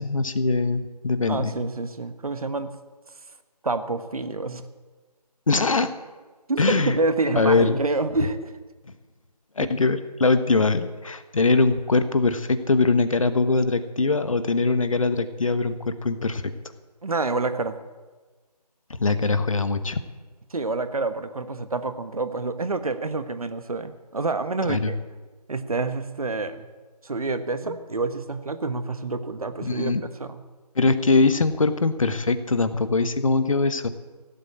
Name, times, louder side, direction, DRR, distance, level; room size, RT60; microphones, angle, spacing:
voice 1, 0.0-1.6 5.5-5.9 6.6-7.0 7.4-7.8 9.6-16.5 19.0-20.0 24.7-24.9 27.7-27.8 29.6-30.0 30.8-33.9, left 3 dB, 50° left, 11 dB, 1.1 m, -22 dB
voice 2, 1.3-2.7 3.6-4.6 6.5-8.5 9.6-9.7 17.0-17.7 20.5-25.0 25.5-26.7 27.0-29.9 30.2-30.4, right 3 dB, 60° right, 10 dB, 1.3 m, -27 dB
16.5 x 7.9 x 8.7 m, 1.3 s
figure-of-eight pair, 165°, 21 cm